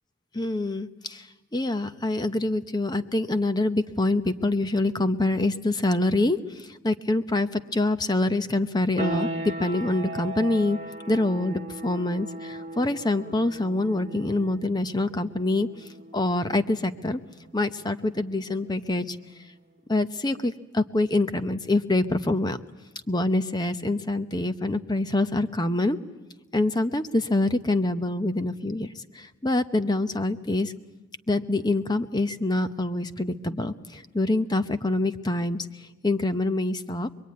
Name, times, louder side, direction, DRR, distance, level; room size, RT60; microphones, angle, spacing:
voice 1, 0.3-1.3 1.5-10.8 11.1-17.2 17.5-19.2 19.9-22.6 23.1-26.0 26.5-30.7 31.3-37.1, left 2 dB, 20° left, 11 dB, 0.8 m, -25 dB
sound 1, 9.0-19.5, right 2 dB, 35° right, 1.8 m, -38 dB
25.5 x 22.0 x 9.5 m, 1.1 s
head